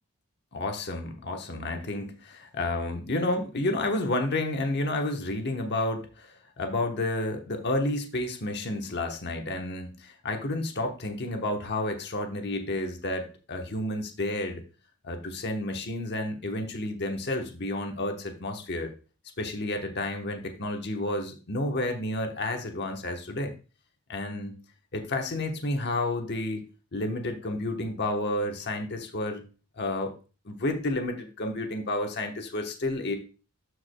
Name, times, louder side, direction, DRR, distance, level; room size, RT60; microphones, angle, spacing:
voice 1, 0.5-14.6 15.0-18.9 19.4-23.5 24.1-24.5 24.9-26.6 26.9-29.4 29.8-30.1 30.4-33.2, left 2 dB, 50° left, 4 dB, 1.1 m, -30 dB
12.5 x 4.8 x 2.2 m, 0.34 s
head